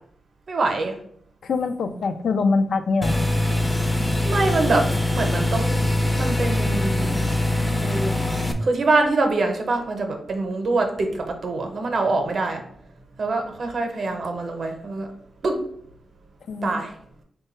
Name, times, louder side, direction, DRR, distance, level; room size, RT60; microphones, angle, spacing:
voice 1, 0.5-0.9 4.2-4.8 5.1-5.8 6.1-7.3 7.7-8.1 8.6-12.6 13.2-15.1 15.4-15.6 16.6-16.9, right 3 dB, 60° right, 4 dB, 0.7 m, -24 dB
voice 2, 1.4-3.2 16.5-16.8, left 4 dB, 80° left, 9 dB, 0.3 m, -23 dB
sound 1, 3.0-8.5, left 1 dB, 10° left, 0.4 m, -23 dB
3.7 x 2.2 x 4.2 m, 0.66 s
cardioid pair, 85°, 0 cm